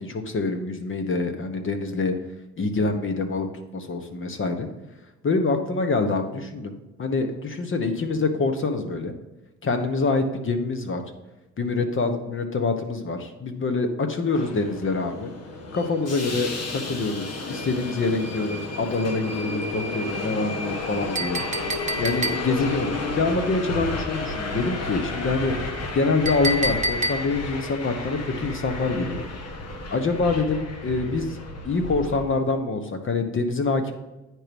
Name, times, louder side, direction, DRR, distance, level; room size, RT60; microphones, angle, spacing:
voice 1, 0.0-2.2 2.6-3.5 3.7-4.7 5.2-9.1 9.6-11.0 11.6-15.3 15.7-21.4 22.0-25.6 25.9-29.2 29.9-31.3 31.6-33.9, left 3 dB, 40° left, 7 dB, 1.3 m, -25 dB
Subway metro underground, 14.3-32.2, left 2 dB, 55° left, 1.5 m, -32 dB
Chink clink, 21.1-22.7 26.3-27.5, right 1 dB, 25° right, 0.7 m, -28 dB
9.7 x 4.7 x 5.3 m, 1.0 s
cardioid pair, 90°, 30 cm